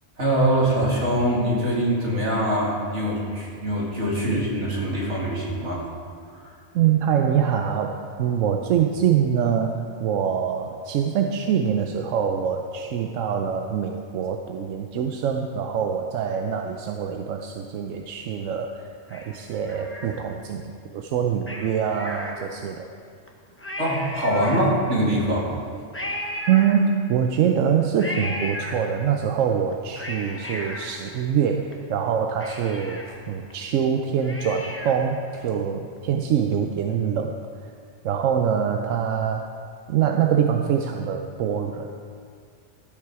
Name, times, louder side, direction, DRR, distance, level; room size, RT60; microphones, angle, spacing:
voice 1, 0.2-5.8 6.3-6.6 23.8-25.5, right 1 dB, 70° right, -4 dB, 2.5 m, -23 dB
voice 2, 6.7-22.9 26.5-37.3 38.0-39.5 39.9-41.9, right 8 dB, 90° right, 4 dB, 1.0 m, -24 dB
Cat, 19.1-20.6 21.4-22.8 23.3-23.4 23.6-25.1 25.9-27.3 28.0-29.3 29.7-31.7 32.1-32.2 32.4-35.2 35.5-35.6, left 1 dB, 10° left, 0.8 m, -35 dB
13.0 x 8.0 x 4.7 m, 2.2 s
omnidirectional pair, 1.3 m